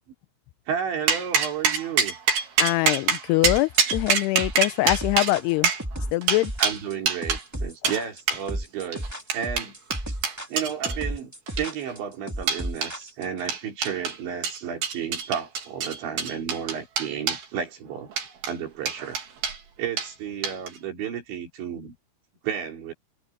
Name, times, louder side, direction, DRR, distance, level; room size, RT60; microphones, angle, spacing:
voice 1, 0.7-2.2 6.6-9.0 9.3-9.8 10.1-10.2 10.5-18.1 18.5-19.2 19.8-21.9 22.4-22.9, right 8 dB, 75° right, 5.9 m, -32 dB
sound 1, 1.1-7.4 7.8-8.0 8.3-8.4 8.9-11.0 11.5-11.9 12.5-12.9 13.5-14.2 14.4-17.4 18.1-18.5 18.9-19.6 20.0-20.1 20.4-20.8, right 6 dB, 60° right, 5.4 m, -25 dB
voice 2, 2.6-5.7 6.1-6.5, left 19 dB, 85° left, 2.4 m, -23 dB
sound 2, 3.4-13.5, right 1 dB, 10° right, 0.7 m, -33 dB
omnidirectional pair, 5.2 m